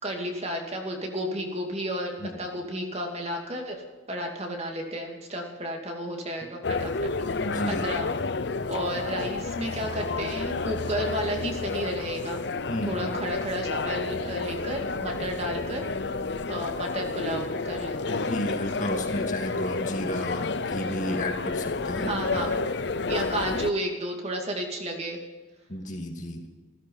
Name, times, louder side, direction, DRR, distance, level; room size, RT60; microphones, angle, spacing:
voice 1, 0.0-3.8 4.1-7.1 7.7-8.1 8.7-12.5 12.9-15.8 16.5-18.3 22.0-22.7 23.1-25.2, right 1 dB, 30° right, 2 dB, 2.5 m, -32 dB
sound 1, 6.6-23.7, left 3 dB, 55° left, 0.6 m, -30 dB
voice 2, 7.3-7.9 12.7-13.1 18.1-22.5 25.7-26.5, equal, 40° left, 2 dB, 2.4 m, -32 dB
15.5 x 15.0 x 5.6 m, 1.3 s
head